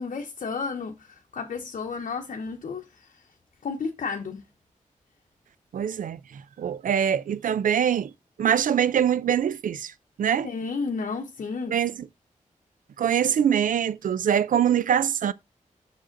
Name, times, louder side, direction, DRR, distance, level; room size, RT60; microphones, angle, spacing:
voice 1, 0.0-3.2 3.6-4.4 10.4-11.8, left 4 dB, 70° left, 0.8 m, -32 dB
voice 2, 5.7-8.1 8.4-9.9 10.2-10.5 11.7-11.9 13.0-15.3, right 9 dB, 80° right, 0.4 m, -23 dB
6.1 x 4.9 x 3.8 m
cardioid pair, 60°, 14 cm